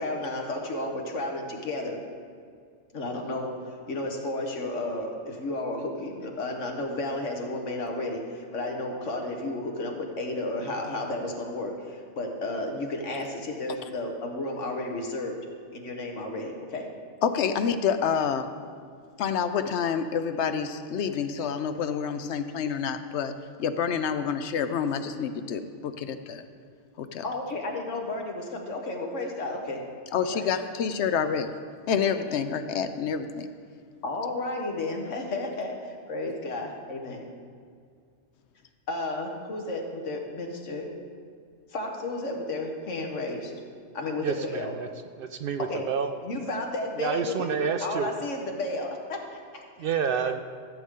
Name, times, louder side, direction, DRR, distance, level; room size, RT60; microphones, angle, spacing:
voice 1, 0.0-2.0 2.9-15.4 15.7-16.9 27.2-29.8 30.3-30.5 34.0-37.3 38.9-40.9 41.7-43.5 43.9-44.7 45.7-45.8 46.2-49.6, left 2 dB, 85° left, 2 dB, 1.6 m, -32 dB
voice 2, 17.2-18.5 19.2-23.3 23.6-26.4 27.0-27.2 30.1-31.5 31.9-33.5, left 7 dB, 70° left, 10 dB, 0.9 m, -28 dB
voice 3, 44.2-44.9 45.2-46.1 47.0-48.2 49.8-50.4, right 6 dB, 60° right, 8 dB, 0.6 m, -29 dB
15.0 x 7.9 x 3.7 m, 2.1 s
omnidirectional pair, 1.2 m